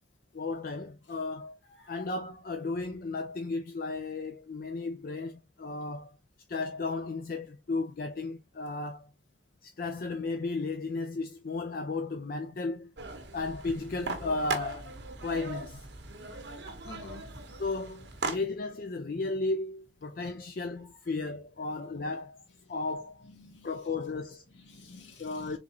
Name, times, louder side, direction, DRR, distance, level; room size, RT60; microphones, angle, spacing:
voice 1, 0.3-1.6 1.9-6.1 6.5-9.1 9.6-12.9 13.3-14.9 15.2-15.9 17.6-22.4 22.7-23.3 23.6-24.4 25.2-25.6, left 3 dB, 50° left, 0.5 m, -34 dB
sound 1, 13.0-18.4, right 3 dB, 75° right, 1.0 m, -39 dB
voice 2, 16.8-17.5 21.7-21.8 23.2-23.8 24.5-25.6, left 3 dB, 90° left, 1.7 m, -50 dB
3.9 x 3.6 x 2.8 m
head